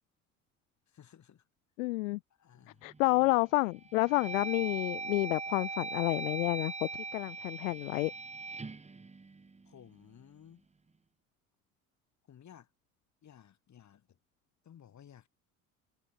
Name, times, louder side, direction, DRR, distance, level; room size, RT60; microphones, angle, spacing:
voice 1, 0.9-1.5 2.3-2.9 9.6-10.7 12.2-12.7 13.2-14.2 14.6-15.3, left 9 dB, 45° left, 3.9 m, -56 dB
voice 2, 1.8-2.2 2.8-8.1, left 23 dB, 80° left, 0.5 m, -30 dB
sound 1, 2.9-3.3 3.8-10.0, right 4 dB, 15° right, 1.7 m, -41 dB
hypercardioid pair, 65°, 40 cm